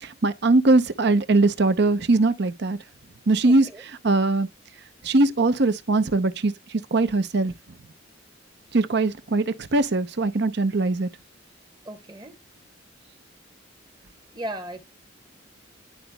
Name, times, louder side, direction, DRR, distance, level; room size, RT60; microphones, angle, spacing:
voice 1, 0.0-2.8 3.3-4.5 5.0-7.5 8.7-11.1, right 2 dB, 60° right, 0.7 m, -21 dB
voice 2, 3.4-3.8 11.8-12.3 14.3-14.9, right 1 dB, 20° right, 1.1 m, -36 dB
11.0 x 4.0 x 2.2 m
head